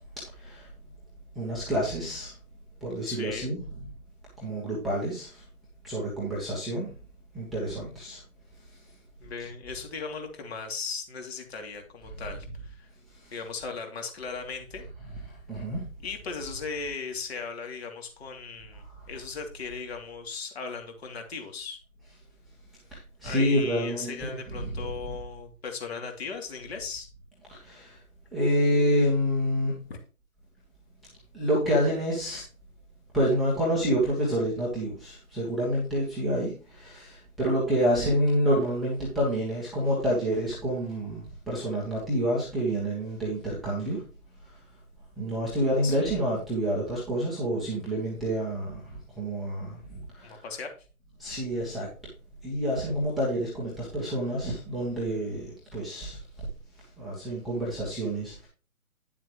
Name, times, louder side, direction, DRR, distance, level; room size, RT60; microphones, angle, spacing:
voice 1, 0.3-0.7 1.3-2.3 2.8-3.6 4.4-5.4 5.8-6.9 7.3-8.2 13.2-13.3 15.3-15.9 22.9-24.9 27.5-28.0 28.3-29.8 31.3-32.4 33.1-44.0 45.2-50.4 51.2-51.9 52.4-56.2 57.0-58.5, equal, ahead, -9 dB, 1.0 m, -28 dB
voice 2, 3.1-3.5 9.2-12.9 13.3-14.9 16.0-21.8 23.2-27.1 29.9-30.0 45.8-46.1 50.2-50.7, left 5 dB, 45° left, 3 dB, 3.0 m, -37 dB
10.5 x 7.4 x 3.1 m, 0.35 s
hypercardioid pair, 155°, 44 cm